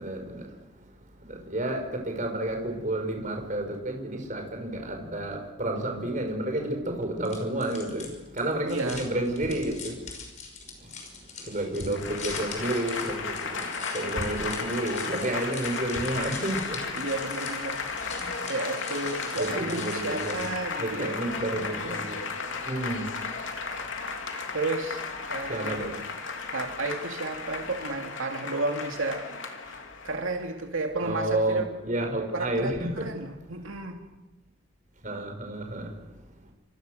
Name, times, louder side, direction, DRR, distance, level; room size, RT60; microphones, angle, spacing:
voice 1, 0.0-10.1 10.8-17.1 18.1-18.4 19.4-20.5 20.8-22.3 22.6-23.6 24.1-24.6 25.4-26.0 29.7-29.8 31.0-33.4 35.0-36.5, right 1 dB, 40° right, 5.8 m, -31 dB
sound 1, 7.2-20.7, left 5 dB, 35° left, 5.7 m, -43 dB
voice 2, 8.7-9.0 16.9-18.2 18.5-21.2 24.5-25.0 25.3-25.8 26.5-29.3 29.6-29.7 30.0-31.6 32.3-34.0, right 2 dB, 85° right, 2.6 m, -32 dB
Applause / Crowd, 11.9-30.4, left 4 dB, 70° left, 3.2 m, -35 dB
29.0 x 26.0 x 6.7 m
head